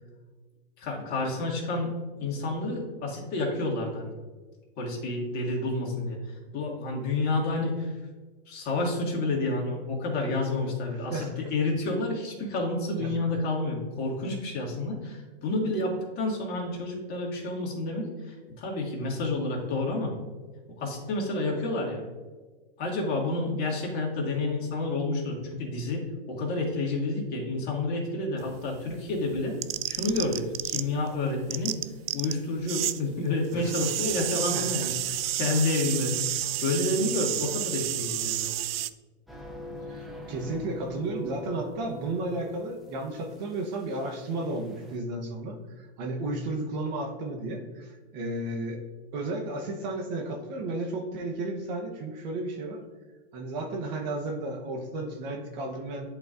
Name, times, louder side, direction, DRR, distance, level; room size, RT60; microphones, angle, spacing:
voice 1, 0.8-1.9 2.2-4.1 4.8-6.2 6.5-7.9 8.5-20.1 20.8-22.0 22.8-29.6 29.9-31.8 32.1-38.5, left 2 dB, 30° left, -2 dB, 1.9 m, -29 dB
sound 1, 28.4-31.1 31.3-33.0 33.3-38.9, right 13 dB, 65° right, 0.4 m, -31 dB
voice 2, 34.5-34.9 39.9-48.8 49.1-52.8 53.3-56.1, right 2 dB, 40° right, 2 dB, 1.1 m, -33 dB
sound 2, 39.3-45.0, left 1 dB, ahead, 0.5 m, -44 dB
11.0 x 4.0 x 2.5 m, 1.3 s
hypercardioid pair, 135°, 32 cm